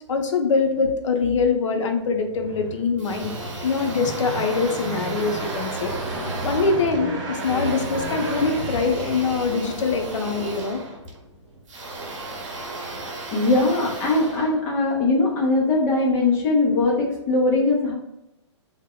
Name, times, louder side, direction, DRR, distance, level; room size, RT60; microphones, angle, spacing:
voice 1, 0.1-3.3 3.6-5.9 6.4-10.8, left 4 dB, 80° left, 5 dB, 0.5 m, -23 dB
sound 1, 2.0-9.6, right 1 dB, 40° right, 0.9 m, -33 dB
sound 2, 3.0-15.2, right 2 dB, 85° right, 0.7 m, -34 dB
voice 2, 13.3-17.9, left 2 dB, 20° left, -1 dB, 0.5 m, -20 dB
2.1 x 2.0 x 3.5 m, 0.92 s
hypercardioid pair, 155°, 16 cm